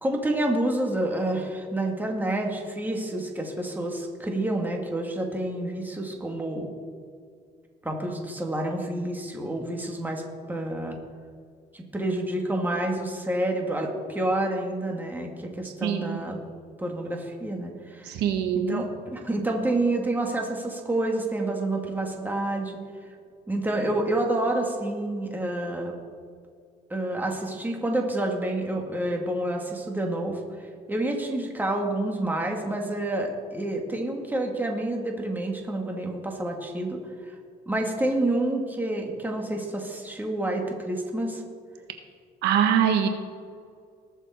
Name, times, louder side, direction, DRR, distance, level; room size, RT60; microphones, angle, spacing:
voice 1, 0.0-6.7 7.8-10.2 10.5-11.0 11.7-16.4 16.8-18.1 18.5-22.8 23.5-25.9 26.9-30.4 30.9-37.3 37.7-41.4, right 1 dB, 10° right, 1 dB, 2.2 m, -28 dB
voice 2, 15.8-16.2 18.1-18.8 42.4-43.1, right 8 dB, 85° right, 6 dB, 1.2 m, -23 dB
19.5 x 7.1 x 4.3 m, 2.1 s
cardioid pair, 110°, 17 cm